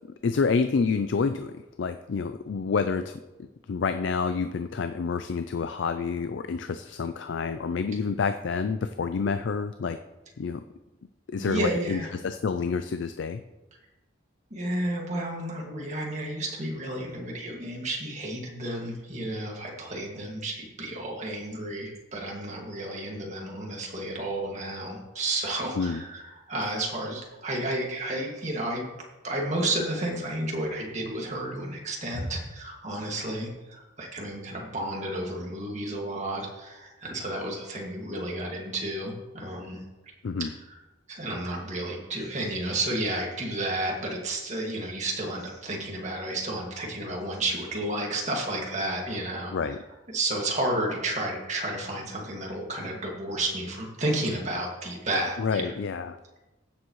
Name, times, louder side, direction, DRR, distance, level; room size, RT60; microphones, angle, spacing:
voice 1, 0.2-3.2 3.7-10.0 10.4-10.6 11.3-13.4 25.7-26.0 40.2-40.5 49.5-49.8 55.4-56.2, left 5 dB, 65° left, 9 dB, 0.4 m, -28 dB
voice 2, 11.4-12.1 14.5-28.9 29.2-39.8 41.1-49.8 50.1-55.7, right 1 dB, 35° right, -1 dB, 2.1 m, -31 dB
15.5 x 7.0 x 3.1 m, 1.1 s
head